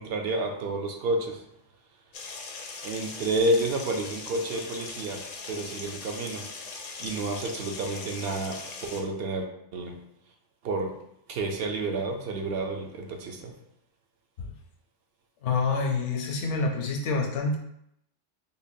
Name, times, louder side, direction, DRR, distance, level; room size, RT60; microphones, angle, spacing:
voice 1, 0.0-1.4 2.8-6.5 7.0-9.5 9.7-10.0 10.6-11.0 11.3-13.5, right 2 dB, 65° right, 4 dB, 0.7 m, -30 dB
sound 1, 2.1-9.0, left 4 dB, 55° left, 0.6 m, -40 dB
voice 2, 15.4-17.6, left 4 dB, 75° left, 2 dB, 0.9 m, -27 dB
5.2 x 2.1 x 2.6 m, 0.75 s
omnidirectional pair, 1.3 m